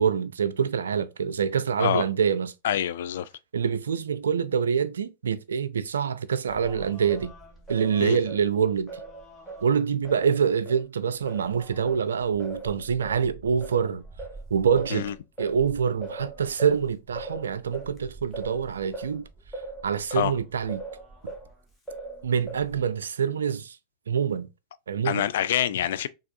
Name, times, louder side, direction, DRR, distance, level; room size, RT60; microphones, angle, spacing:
voice 1, 0.0-2.5 3.5-7.3 7.7-8.9 9.6-14.0 14.5-15.1 15.4-19.2 19.8-20.8 22.2-23.8 24.1-24.5 24.9-25.2, right 7 dB, 70° right, 0.4 m, -25 dB
voice 2, 2.6-3.3 8.0-8.2 14.9-15.1 20.1-20.3 25.0-26.1, left 11 dB, 60° left, 0.3 m, -26 dB
Singing, 6.5-10.8 11.3-21.5 21.9-22.9, right 2 dB, 10° left, 1.2 m, -41 dB
5.7 x 2.4 x 2.5 m
figure-of-eight pair, 90°, 0 cm